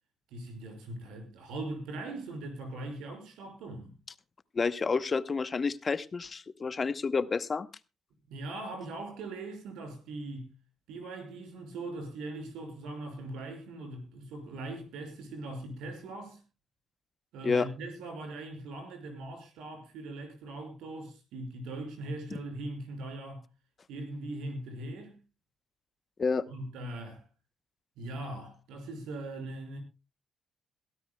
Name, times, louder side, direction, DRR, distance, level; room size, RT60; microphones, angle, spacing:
voice 1, 0.3-4.0 8.3-10.6 10.9-16.4 17.3-23.5 23.9-25.2 26.5-27.2 28.0-29.8, right 2 dB, 90° right, 5.9 m, -40 dB
voice 2, 4.5-7.7 17.4-17.7 26.2-26.4, left 4 dB, 35° left, 0.9 m, -29 dB
22.0 x 13.5 x 2.2 m
cardioid pair, 90°, 0 cm